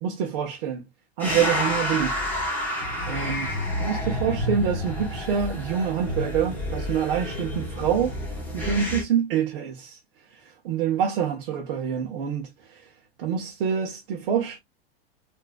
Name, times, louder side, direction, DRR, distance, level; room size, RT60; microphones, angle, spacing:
voice 1, 0.0-0.9 1.2-2.2 3.1-8.2 8.5-10.0 10.6-12.5 13.2-14.6, right 8 dB, 60° right, 1.2 m, -26 dB
sound 1, 1.2-9.0, left 1 dB, 5° left, 1.2 m, -29 dB
3.6 x 3.0 x 2.3 m
supercardioid pair, 150°, 31 cm